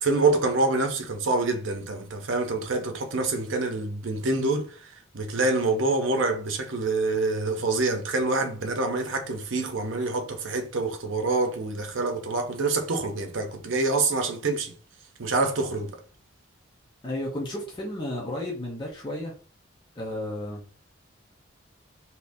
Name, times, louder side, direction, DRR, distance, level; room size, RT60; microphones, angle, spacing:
voice 1, 0.0-14.7 15.2-16.0, right 3 dB, 80° right, 0.7 m, -26 dB
voice 2, 17.0-19.4 20.0-20.6, left 1 dB, 25° left, 0.6 m, -33 dB
3.6 x 2.8 x 2.6 m
head